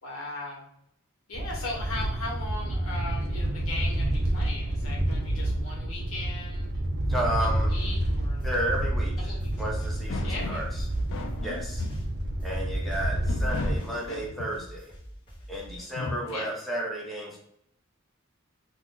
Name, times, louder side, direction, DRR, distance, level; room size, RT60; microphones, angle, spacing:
voice 1, 0.0-0.7 1.3-6.7 7.1-8.5 9.3-9.5 10.2-10.6 16.3-16.5, left 2 dB, 80° left, -2 dB, 1.0 m, -38 dB
sound 1, 1.3-13.8, right 1 dB, 50° right, 0.4 m, -29 dB
voice 2, 7.1-7.7 8.4-9.3 9.6-10.7 11.4-11.8 12.4-14.9 15.5-17.4, right 1 dB, ahead, -3 dB, 0.5 m, -32 dB
sound 2, 7.7-8.3 9.3-9.4 10.1-10.7 11.1-12.2 13.2-14.7 15.8-16.6, left 3 dB, 60° left, 0.4 m, -36 dB
sound 3, 8.0-16.0, equal, 25° left, 0.9 m, -47 dB
2.4 x 2.3 x 3.6 m, 0.76 s
head